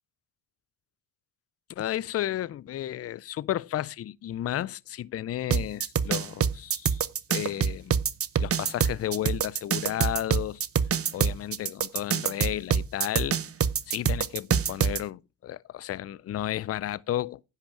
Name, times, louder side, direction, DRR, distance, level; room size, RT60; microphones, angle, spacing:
voice 1, 1.8-7.0 7.3-8.0 8.4-10.6 11.1-13.4 13.9-17.4, left 12 dB, 30° left, 0.4 m, -33 dB
sound 1, 5.5-15.0, right 7 dB, 30° right, 0.7 m, -25 dB
10.5 x 5.8 x 5.9 m
supercardioid pair, 80°, 49 cm